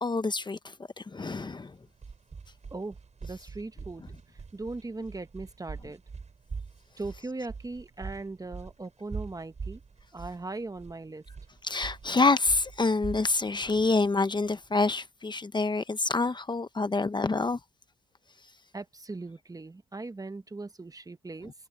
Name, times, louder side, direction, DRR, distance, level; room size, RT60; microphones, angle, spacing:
voice 1, 0.0-1.8 11.6-17.6, left 3 dB, 20° left, 0.9 m, -27 dB
sound 1, 1.7-14.9, right 5 dB, 35° right, 7.0 m, -43 dB
voice 2, 2.7-4.0 4.3-6.0 7.0-9.8 10.1-11.2 18.7-21.5, right 3 dB, 20° right, 1.0 m, -39 dB
cardioid pair, 90°, 20 cm